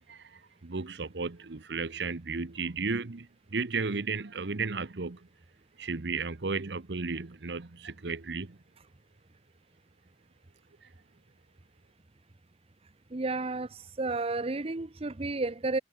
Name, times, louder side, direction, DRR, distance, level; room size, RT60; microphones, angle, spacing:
voice 1, 0.0-5.3 5.8-8.6 10.8-10.9, right 4 dB, 75° right, 1.0 m, -34 dB
voice 2, 13.1-15.8, right 3 dB, 35° right, 0.8 m, -32 dB
head